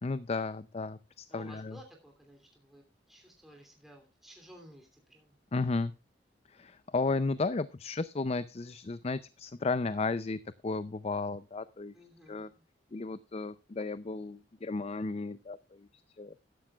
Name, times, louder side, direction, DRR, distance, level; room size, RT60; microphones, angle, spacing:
voice 1, 0.0-1.8 5.5-5.9 6.5-11.9 12.3-12.5 12.9-15.9 16.2-16.3, left 3 dB, 35° left, 15 dB, 0.5 m, -34 dB
voice 2, 1.3-5.3 11.9-12.6, equal, ahead, 1 dB, 2.9 m, -55 dB
15.0 x 12.0 x 2.4 m, 0.28 s
head